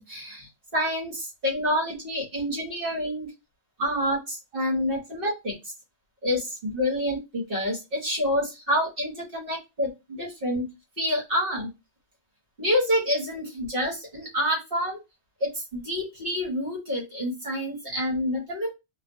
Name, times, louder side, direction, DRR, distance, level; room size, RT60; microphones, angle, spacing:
voice 1, 0.0-3.3 3.8-5.5 6.2-10.7 11.0-11.7 12.6-15.0 15.4-18.7, equal, 55° right, -3 dB, 1.5 m, -28 dB
2.7 x 2.5 x 2.6 m, 0.23 s
omnidirectional pair, 1.1 m